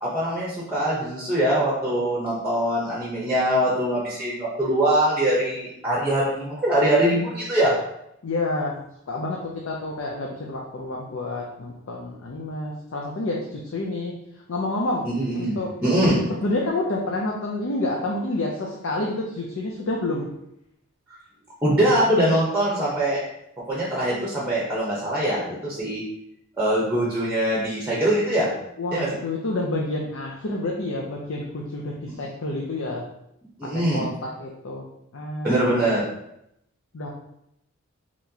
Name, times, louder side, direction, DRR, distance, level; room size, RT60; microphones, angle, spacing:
voice 1, 0.0-7.7 15.0-16.2 21.6-23.2 23.7-26.0 26.6-28.5 28.9-29.1 33.6-34.0 35.4-36.0, right 1 dB, 10° right, -5 dB, 0.8 m, -22 dB
voice 2, 8.2-14.1 14.5-15.1 15.3-15.7 16.4-20.3 28.8-33.0 33.6-34.9 35.1-35.8 36.9-37.1, left 2 dB, 65° left, -2 dB, 0.5 m, -29 dB
4.1 x 3.0 x 2.8 m, 0.80 s
head